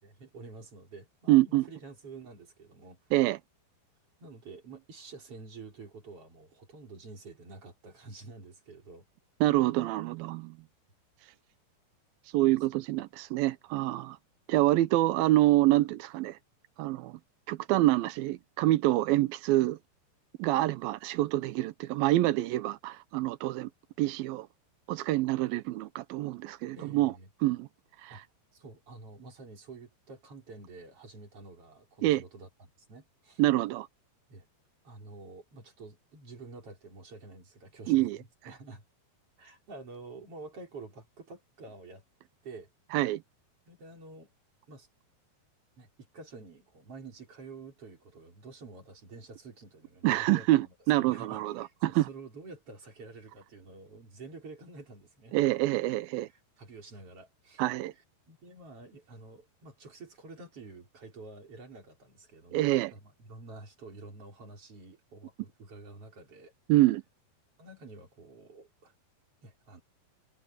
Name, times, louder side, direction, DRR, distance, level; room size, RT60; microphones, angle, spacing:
voice 1, 0.0-3.0 4.2-9.1 12.5-12.8 26.7-27.3 28.1-28.2 28.5-33.4 34.3-34.5 34.8-38.8 39.4-42.0 42.4-42.7 43.7-44.3 44.7-44.9 45.8-50.7 51.0-55.4 56.6-57.6 58.3-66.5 67.6-68.9 69.4-69.8, right 3 dB, 30° right, 5.3 m, -49 dB
voice 2, 1.3-1.6 3.1-3.4 9.4-10.6 12.3-14.2 14.5-16.4 16.8-17.2 17.5-19.8 20.4-23.7 24.0-24.5 24.9-27.1 27.4-27.7 28.0-28.2 32.0-32.2 33.4-33.9 37.9-38.2 42.9-43.2 50.0-52.1 55.3-56.3 57.6-57.9 62.5-62.9 66.7-67.0, right 16 dB, 85° right, 2.1 m, -26 dB
omnidirectional pair, 5.1 m